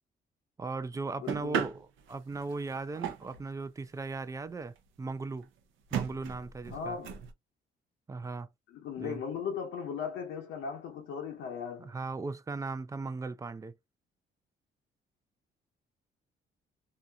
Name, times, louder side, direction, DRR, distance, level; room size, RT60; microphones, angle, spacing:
voice 1, 0.6-5.5 5.9-7.0 8.1-8.5 9.0-9.2 11.8-13.7, right 3 dB, 15° right, 0.4 m, -38 dB
voice 2, 1.2-1.6 6.7-7.1 8.7-11.9, left 6 dB, 85° left, 0.8 m, -37 dB
sound 1, 1.3-3.5 4.1-4.2 4.4-4.5 4.8-4.9 5.4-5.5 5.9-7.3, right 7 dB, 80° right, 0.6 m, -36 dB
2.8 x 2.5 x 2.3 m
cardioid pair, 90°, 20 cm